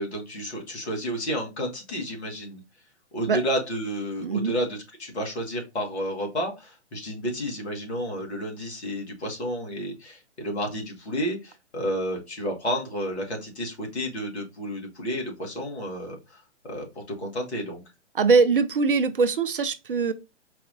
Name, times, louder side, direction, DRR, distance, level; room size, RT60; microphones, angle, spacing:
voice 1, 0.0-2.6 3.1-17.8, equal, 60° left, 1.9 m, -31 dB
voice 2, 4.2-4.5 18.1-20.1, right 4 dB, 50° right, 0.5 m, -22 dB
4.7 x 2.8 x 2.7 m
figure-of-eight pair, 130°, 36 cm